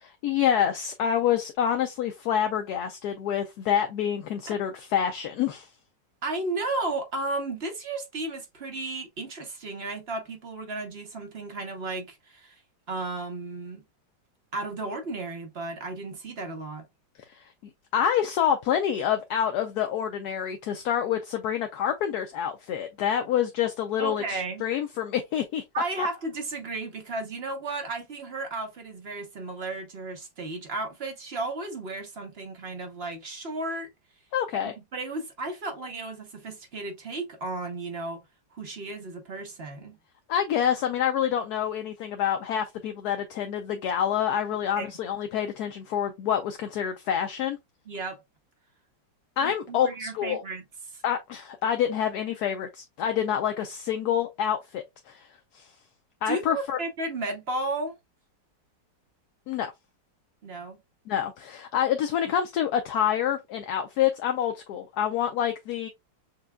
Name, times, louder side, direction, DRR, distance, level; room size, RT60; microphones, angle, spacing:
voice 1, 0.0-5.7 17.3-17.5 17.9-25.6 26.0-26.1 34.3-34.7 40.3-47.6 49.4-50.4 51.0-55.3 55.5-55.7 56.2-56.8 59.5-59.7 61.1-65.9, left 9 dB, 70° left, 1.0 m, -27 dB
voice 2, 6.2-12.6 12.9-13.8 14.5-16.8 24.0-24.6 25.7-33.9 34.6-38.2 38.5-40.0 44.8-44.9 47.9-48.2 49.4-51.0 56.3-58.0 60.4-60.8, right 2 dB, 45° right, 0.9 m, -34 dB
6.5 x 2.3 x 2.2 m
omnidirectional pair, 1.9 m